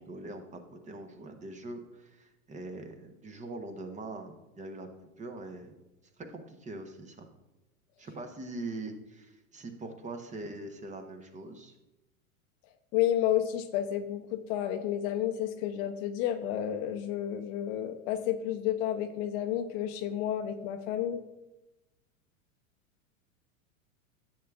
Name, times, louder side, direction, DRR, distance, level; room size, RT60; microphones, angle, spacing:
voice 1, 0.0-4.9 5.2-5.7 6.2-7.3 8.0-11.8, right 2 dB, 15° right, 6 dB, 0.8 m, -42 dB
voice 2, 12.9-21.2, left 11 dB, 45° left, 9 dB, 0.7 m, -31 dB
10.5 x 7.5 x 2.3 m, 0.99 s
hypercardioid pair, 105°, 42 cm